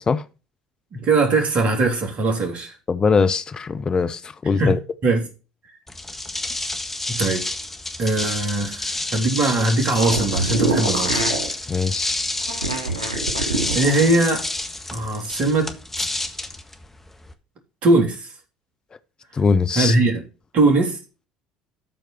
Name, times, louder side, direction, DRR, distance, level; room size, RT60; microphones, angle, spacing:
voice 1, 1.0-2.8 4.6-5.3 7.1-7.5 8.0-11.2 13.7-14.5 14.9-16.1 17.8-18.3 19.8-20.2 20.5-21.0, right 2 dB, 45° right, 3.5 m, -20 dB
voice 2, 2.9-4.8 11.7-12.3 19.3-19.9, left 5 dB, 30° left, 0.7 m, -21 dB
sound 1, 5.9-17.3, left 2 dB, 10° left, 1.6 m, -28 dB
sound 2, 9.9-11.5 12.4-14.2, right 3 dB, 85° right, 2.5 m, -25 dB
13.0 x 4.6 x 5.9 m
figure-of-eight pair, 60°, 3 cm